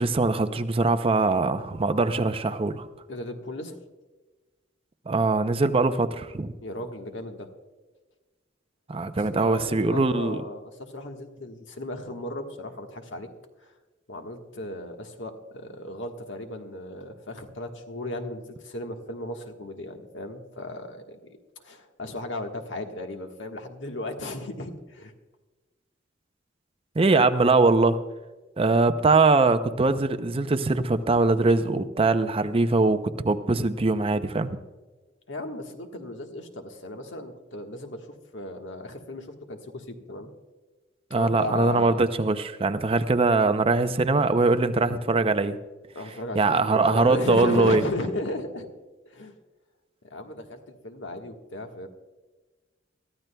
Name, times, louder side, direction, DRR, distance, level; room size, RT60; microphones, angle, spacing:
voice 1, 0.0-2.9 5.1-6.5 8.9-10.4 27.0-28.0 28.6-34.6 41.1-45.6 46.4-47.8, right 3 dB, 30° right, 10 dB, 0.6 m, -22 dB
voice 2, 3.1-3.8 6.6-7.5 9.2-13.3 14.1-21.2 21.6-25.1 35.3-38.1 38.3-40.3 41.1-42.0 45.9-48.7 49.0-49.3 50.0-51.9, left 1 dB, 85° left, 4 dB, 1.4 m, -35 dB
22.5 x 13.5 x 2.3 m, 1.2 s
head